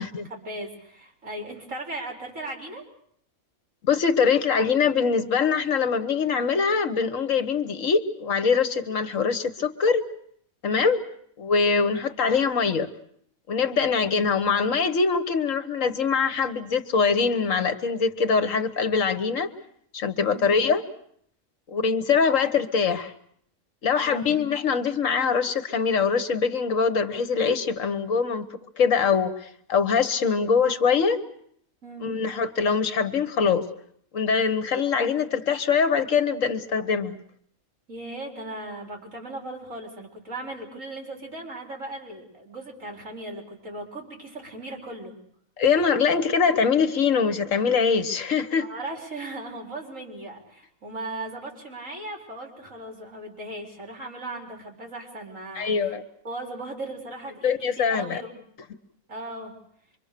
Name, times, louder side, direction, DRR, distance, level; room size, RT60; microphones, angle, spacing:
voice 1, 0.0-2.8 10.7-10.9 13.7-13.9 20.2-20.5 24.0-24.3 31.8-32.1 37.9-45.1 48.6-56.0 56.2-58.4 59.1-59.5, right 2 dB, 65° right, 1 dB, 4.6 m, -37 dB
voice 2, 3.8-10.0 10.6-11.0 11.4-12.9 13.5-19.5 19.9-20.8 21.7-23.1 23.8-28.4 28.8-31.2 32.0-33.7 34.1-37.2 45.6-48.7 55.5-56.0 57.4-58.2, left 5 dB, 65° left, 11 dB, 1.5 m, -23 dB
26.0 x 24.0 x 6.7 m, 0.67 s
omnidirectional pair, 1.4 m